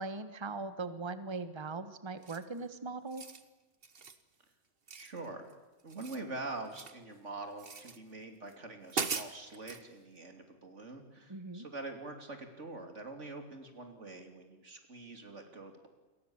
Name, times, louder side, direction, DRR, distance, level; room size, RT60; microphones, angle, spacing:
voice 1, 0.0-3.2 11.3-11.7, right 3 dB, 25° right, 11 dB, 1.3 m, -40 dB
sound 1, 2.2-2.6 3.0-3.4 3.8-4.2 4.9-5.5 5.8-7.0 7.6-8.0 8.5-8.6 8.9-9.8, right 5 dB, 55° right, 1.5 m, -40 dB
voice 2, 4.9-5.5 5.8-15.9, right 2 dB, 85° right, 5 dB, 3.6 m, -45 dB
29.0 x 23.0 x 7.3 m, 1.2 s
omnidirectional pair, 1.2 m